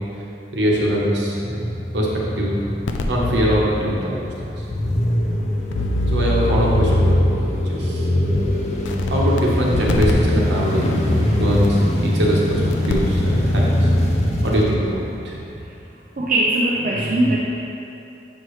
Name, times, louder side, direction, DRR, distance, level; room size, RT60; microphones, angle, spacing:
voice 1, 0.5-2.6 3.1-4.2 4.6-4.7 6.1-7.3 7.6-8.1 9.1-13.9 14.4-15.0 15.2-15.4, equal, 75° right, -4 dB, 1.1 m, -22 dB
sound 1, 1.4-15.5, left 1 dB, 35° left, 0.5 m, -22 dB
sound 2, 2.9-3.6 4.3-4.4 4.7-4.8 5.7-7.4 8.3-8.4 8.8-9.4 9.7-10.1 11.6-11.7 12.7-13.2 13.5-13.6, left 2 dB, 85° left, 0.5 m, -23 dB
voice 2, 16.2-17.4, right 1 dB, 45° right, -4 dB, 0.5 m, -20 dB
7.4 x 4.6 x 3.2 m, 2.9 s
head